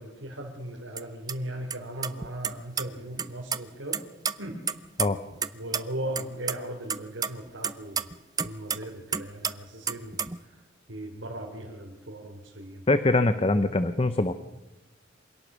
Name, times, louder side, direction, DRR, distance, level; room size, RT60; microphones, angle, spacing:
voice 1, 0.0-4.0 4.4-4.7 5.5-8.1 8.4-10.6 10.9-12.8, right 1 dB, 80° right, -1 dB, 3.6 m, -38 dB
sound 1, 1.0-1.1 1.3-1.4 1.7-1.8 2.0-2.8 3.2-3.6 3.9-5.5 5.7-5.8 6.2-6.5 6.9-8.8 9.1-9.5 9.9-10.4, right 6 dB, 20° right, 0.6 m, -29 dB
voice 2, 12.9-14.3, left 2 dB, 30° left, 11 dB, 0.7 m, -23 dB
27.0 x 18.0 x 6.2 m, 1.0 s
head